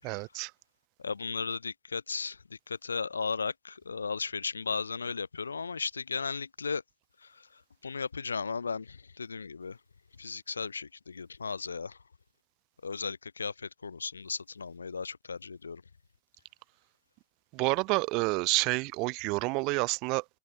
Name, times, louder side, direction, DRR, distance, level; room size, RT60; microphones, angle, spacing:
voice 1, 0.0-0.5 17.5-20.2, right 27 dB, 40° right, 2.7 m, -29 dB
voice 2, 1.0-6.8 7.2-9.8 10.2-12.0 12.8-15.8, left 5 dB, 75° left, 3.8 m, -36 dB
figure-of-eight pair, 90°, 0 cm